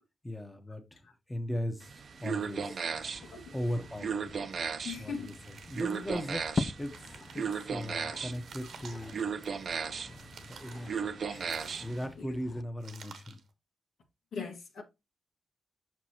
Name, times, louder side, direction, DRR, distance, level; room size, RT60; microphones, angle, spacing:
voice 1, 0.2-1.0 1.3-2.8 3.5-4.3 5.0-5.3 5.7-6.9 7.3-9.3 10.0-11.2 11.8-13.4, equal, 10° left, 1.1 m, -38 dB
sound 1, 1.8-12.0, right 6 dB, 60° right, 0.7 m, -37 dB
sound 2, 2.9-12.6, left 3 dB, 40° left, 0.4 m, -43 dB
voice 2, 3.3-3.7 4.8-5.4 8.1-8.2 11.3-11.5 12.2-12.3 14.3-14.8, left 5 dB, 85° left, 1.7 m, -41 dB
sound 3, 5.1-6.2 6.6-7.9 8.3-9.8 10.2-10.9 11.3-12.2 12.8-13.5, right 6 dB, 85° right, 1.2 m, -53 dB
6.0 x 6.0 x 2.9 m
cardioid pair, 95°, 0 cm